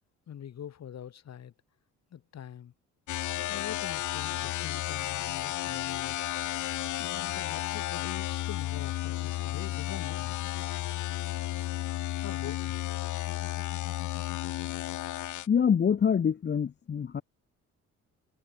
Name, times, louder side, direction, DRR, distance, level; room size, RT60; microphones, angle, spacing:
voice 1, 0.3-1.5 2.1-2.7 3.4-6.5 7.0-10.4 12.2-12.8, left 9 dB, 60° left, 4.1 m, -44 dB
sound 1, 3.1-15.5, left 15 dB, 80° left, 1.1 m, -33 dB
voice 2, 15.5-17.2, left 7 dB, 35° left, 0.9 m, -25 dB
cardioid pair, 90°, 30 cm